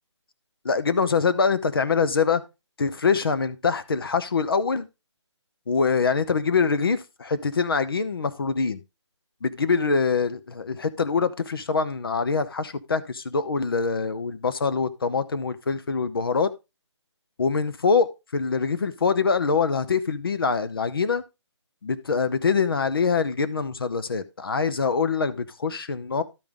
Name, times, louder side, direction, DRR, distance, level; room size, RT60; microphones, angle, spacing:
voice 1, 0.6-2.4 2.8-4.9 5.7-8.8 9.4-16.5 17.4-21.2 21.8-26.2, left 5 dB, 50° left, 0.8 m, -24 dB
12.0 x 5.3 x 3.6 m
hypercardioid pair, 175°, 15 cm